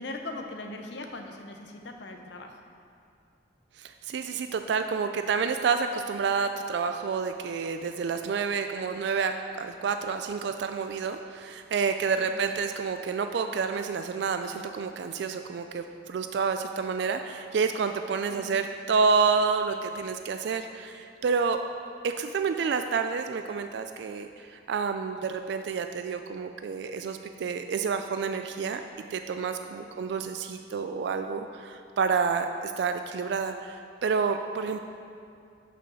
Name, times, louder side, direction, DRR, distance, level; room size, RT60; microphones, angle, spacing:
voice 1, 0.0-2.6 12.2-12.3 18.3-18.5 29.8-29.9, left 2 dB, 70° left, 4 dB, 0.7 m, -40 dB
voice 2, 3.8-21.6 22.0-28.8 29.1-34.8, right 5 dB, 65° right, 7 dB, 0.3 m, -29 dB
6.1 x 5.7 x 6.2 m, 2.5 s
head